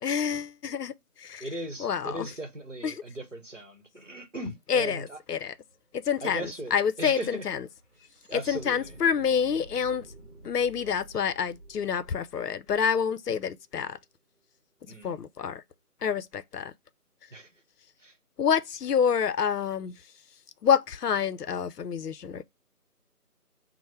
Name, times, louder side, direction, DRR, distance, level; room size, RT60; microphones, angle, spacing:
voice 1, 0.0-0.9 1.2-1.4 1.8-2.3 2.8-3.0 4.7-5.5 5.9-7.6 8.3-10.1 10.4-14.0 15.0-15.6 16.0-16.7 18.4-19.9 20.6-22.4, left 7 dB, 80° left, 0.6 m, -27 dB
voice 2, 1.4-5.2 6.2-7.5 8.3-9.0 14.9-15.2 17.3-17.5 18.0-18.2, right 1 dB, 50° right, 1.0 m, -38 dB
sound 1, 5.1-5.2 5.4-13.6, right 1 dB, 30° right, 2.3 m, -51 dB
5.6 x 2.1 x 3.1 m
figure-of-eight pair, 180°, 46 cm